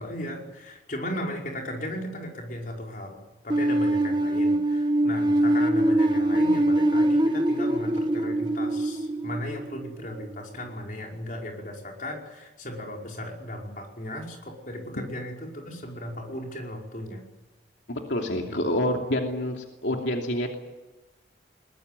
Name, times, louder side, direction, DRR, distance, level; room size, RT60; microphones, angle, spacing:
voice 1, 0.0-17.2 18.5-18.6, left 1 dB, 45° left, 0 dB, 5.2 m, -36 dB
sound 1, 3.5-10.4, right 1 dB, 25° right, 1.3 m, -23 dB
voice 2, 17.9-20.6, left 1 dB, 85° left, 2 dB, 2.8 m, -27 dB
21.5 x 20.5 x 9.4 m, 1.1 s
head